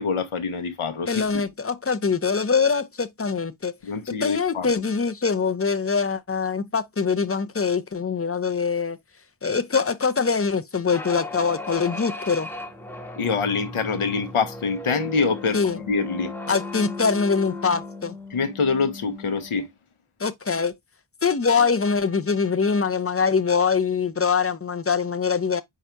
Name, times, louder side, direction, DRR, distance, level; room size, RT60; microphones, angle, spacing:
voice 1, 0.0-1.4 3.8-4.7 13.2-16.3 18.3-19.7, left 5 dB, 85° left, 1.0 m, -25 dB
voice 2, 1.1-3.7 4.1-9.0 9.4-12.5 15.5-15.8 16.5-18.1 20.2-20.7 21.2-25.6, left 5 dB, 30° left, 0.5 m, -23 dB
sound 1, 10.9-19.7, left 2 dB, 5° left, 0.9 m, -36 dB
4.7 x 2.5 x 4.4 m
wide cardioid pair, 75°, 49 cm